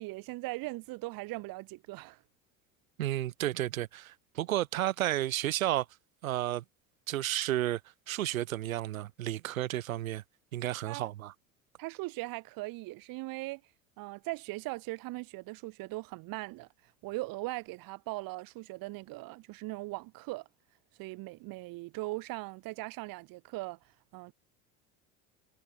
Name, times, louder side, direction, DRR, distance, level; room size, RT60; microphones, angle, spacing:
voice 1, 0.0-2.2 10.8-11.1 11.8-20.5 21.0-24.3, right 22 dB, 60° right, 1.3 m, -40 dB
voice 2, 3.0-5.9 6.2-6.6 7.1-7.8 8.1-10.2 10.5-11.3, right 14 dB, 90° right, 2.1 m, -32 dB
hypercardioid pair, 80°, 40 cm